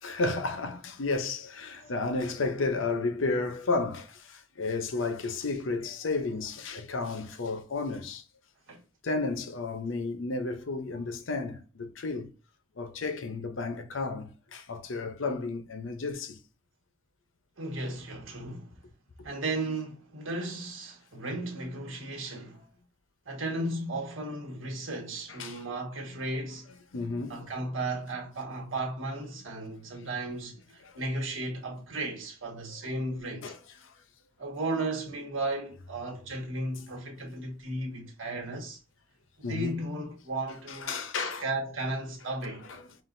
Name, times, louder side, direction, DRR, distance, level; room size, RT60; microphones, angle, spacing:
voice 1, 0.0-8.2 9.0-12.3 12.8-16.4 25.4-25.6 26.9-27.5 30.8-30.9 33.4-33.6 33.8-33.9 39.4-39.8 40.7-41.4, left 3 dB, 75° left, 0.7 m, -32 dB
voice 2, 17.6-18.8 19.2-22.6 23.2-26.7 27.3-33.5 34.4-38.8 39.4-42.7, right 2 dB, 90° right, 1.5 m, -35 dB
5.7 x 2.4 x 2.6 m
head